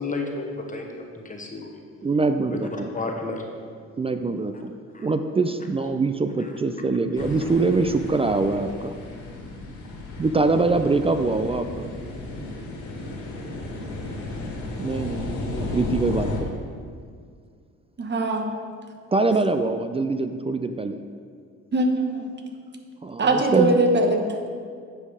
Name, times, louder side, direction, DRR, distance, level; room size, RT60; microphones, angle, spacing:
voice 1, 0.0-1.8 2.5-3.5 4.9-5.1 6.4-6.5, left 3 dB, 25° left, 2 dB, 1.0 m, -32 dB
voice 2, 2.0-2.9 4.0-4.7 5.0-8.9 10.2-11.9 14.8-16.5 19.1-21.0 23.0-23.8, right 3 dB, 20° right, 8 dB, 0.3 m, -24 dB
sound 1, 7.2-16.4, left 2 dB, 75° left, 1.9 m, -34 dB
voice 3, 18.0-18.5 21.7-22.4 23.2-24.5, right 2 dB, 35° right, 4 dB, 1.1 m, -22 dB
8.5 x 5.4 x 4.9 m, 2.1 s
cardioid pair, 90°, 30 cm